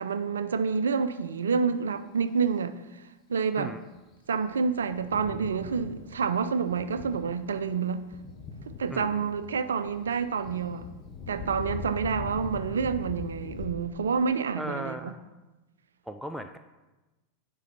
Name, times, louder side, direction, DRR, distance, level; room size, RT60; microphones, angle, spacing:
voice 1, 0.0-2.7 3.3-3.7 4.3-8.0 8.8-10.8 11.3-15.1, right 5 dB, 65° right, 0.5 m, -28 dB
Thunder, 3.9-13.7, left 5 dB, 25° left, 1.2 m, -42 dB
voice 2, 8.9-9.3 14.6-15.2 16.1-16.6, equal, ahead, 0.4 m, -37 dB
9.7 x 4.0 x 5.7 m
figure-of-eight pair, 90°, 0 cm